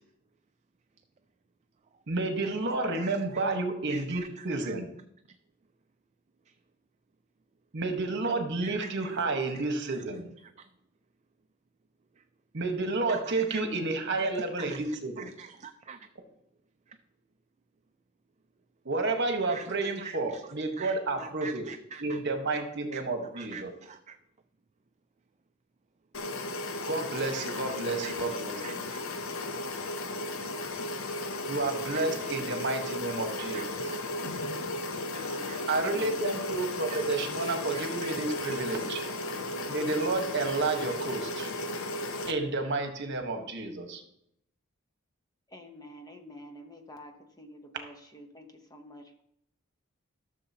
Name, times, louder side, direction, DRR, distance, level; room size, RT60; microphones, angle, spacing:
voice 1, 2.1-5.0 7.7-10.3 12.5-15.3 18.8-21.7 22.0-23.7 26.9-28.9 31.5-33.9 35.7-39.0 39.7-41.5 42.3-44.0, right 3 dB, 60° right, 5 dB, 1.4 m, -31 dB
voice 2, 3.0-3.4 3.9-4.7 8.6-8.9 13.1-13.6 14.2-14.3 14.6-14.8 15.2-16.0 19.5-20.4 20.8-22.2 22.5-22.6 23.3-24.2 27.3-27.5 28.0-28.4 28.6-29.0 31.9-32.3 32.7-32.8 33.4-34.0 35.1-35.7 36.9-37.2 37.7-38.1 38.5-38.6, right 6 dB, 35° right, 8 dB, 0.4 m, -45 dB
sound 1, 26.1-42.3, left 1 dB, 70° left, 0.8 m, -35 dB
voice 3, 34.9-36.5 45.5-49.2, left 1 dB, 20° left, 4 dB, 1.0 m, -49 dB
14.0 x 6.8 x 2.9 m, 0.76 s
head